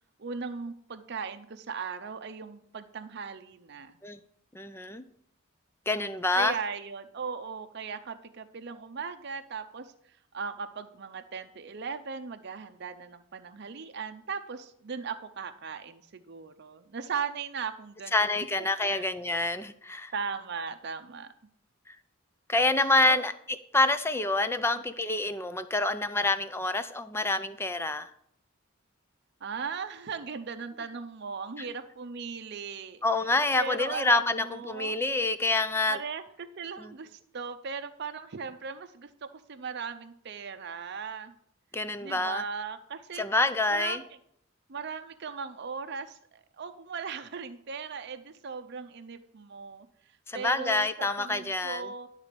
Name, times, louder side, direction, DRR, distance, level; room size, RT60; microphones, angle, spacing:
voice 1, 0.2-4.0 6.3-9.9 10.3-18.3 18.9-19.1 20.1-21.3 23.1-23.2 29.4-33.0 33.6-35.0 35.9-41.3 42.0-43.3 43.7-44.0 44.7-49.9 50.3-52.1, right 5 dB, 55° right, 8 dB, 0.6 m, -38 dB
voice 2, 4.5-5.0 5.9-6.5 18.1-20.1 21.9-22.0 22.5-23.3 23.7-28.1 31.6-31.7 33.0-36.0 36.8-36.9 41.7-42.4 43.1-44.0 50.3-51.9, left 2 dB, 10° left, 11 dB, 0.4 m, -27 dB
11.5 x 4.0 x 6.7 m, 0.70 s
head